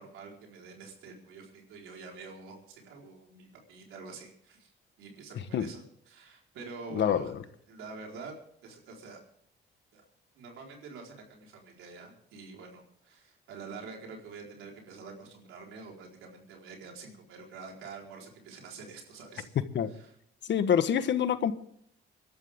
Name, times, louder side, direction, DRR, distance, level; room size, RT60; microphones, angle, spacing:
voice 1, 0.0-4.7 5.0-7.4 7.7-8.4 8.6-9.2 9.9-10.0 10.3-19.5 19.9-20.1, right 4 dB, 85° right, 4.5 m, -46 dB
voice 2, 6.9-7.4 19.7-19.9 20.4-21.5, left 8 dB, 65° left, 1.3 m, -26 dB
24.5 x 12.0 x 3.7 m
cardioid pair, 90°, 20 cm